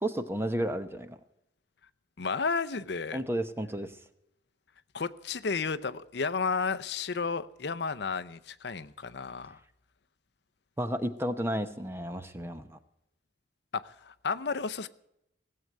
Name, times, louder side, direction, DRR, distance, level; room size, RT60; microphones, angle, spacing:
voice 1, 0.0-1.2 3.1-3.9 10.8-12.8, right 1 dB, 15° right, 10 dB, 0.9 m, -32 dB
voice 2, 2.2-3.2 4.9-9.6 13.7-14.9, left 5 dB, 65° left, 12 dB, 0.6 m, -32 dB
17.5 x 7.7 x 9.3 m, 0.81 s
head